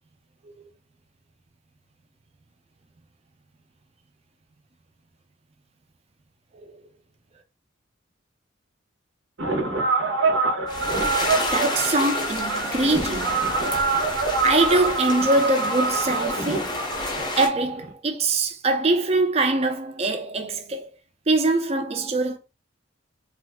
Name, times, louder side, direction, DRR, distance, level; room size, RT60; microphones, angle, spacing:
sound 1, 9.4-17.9, right 4 dB, 65° right, 0.7 m, -25 dB
sound 2, 10.7-17.5, left 2 dB, 25° left, 0.6 m, -30 dB
voice 1, 11.5-13.5 14.4-16.8 17.4-20.9 21.3-22.4, right 2 dB, 30° right, 0.5 m, -23 dB
2.5 x 2.2 x 3.3 m
head